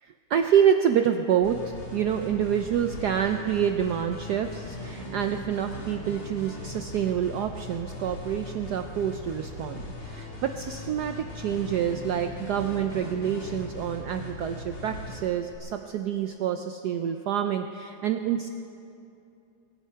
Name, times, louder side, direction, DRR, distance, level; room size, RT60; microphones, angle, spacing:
voice 1, 0.0-18.5, right 9 dB, 80° right, 6 dB, 0.9 m, -27 dB
sound 1, 1.4-15.6, left 1 dB, 85° left, 3.7 m, -39 dB
23.0 x 9.1 x 5.6 m, 2.7 s
omnidirectional pair, 2.3 m